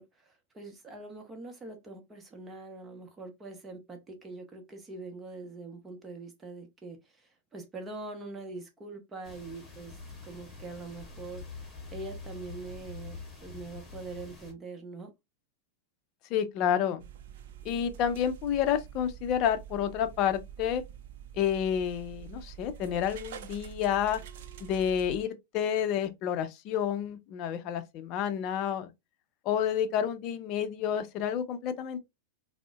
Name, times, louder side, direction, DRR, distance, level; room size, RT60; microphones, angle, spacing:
voice 1, 0.0-9.9 10.2-15.1, right 3 dB, 20° right, 0.8 m, -43 dB
sound 1, 9.2-14.5, left 3 dB, 15° left, 1.6 m, -45 dB
voice 2, 16.3-17.1 17.6-20.8 21.3-24.2 24.6-28.9 29.4-32.0, left 9 dB, 45° left, 0.5 m, -29 dB
sound 2, 17.0-25.2, right 10 dB, 65° right, 0.5 m, -46 dB
3.7 x 2.1 x 2.3 m
hypercardioid pair, 105°, 0 cm